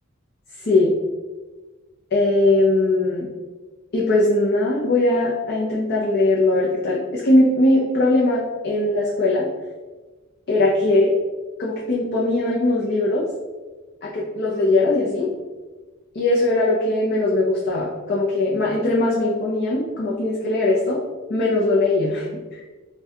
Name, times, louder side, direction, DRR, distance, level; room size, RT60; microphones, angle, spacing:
voice 1, 0.6-0.9 2.1-3.3 3.9-9.5 10.5-11.1 11.6-13.2 14.0-15.3 16.1-21.0 21.3-22.3, left 2 dB, 50° left, -5 dB, 0.6 m, -20 dB
5.5 x 2.3 x 2.8 m, 1.3 s
head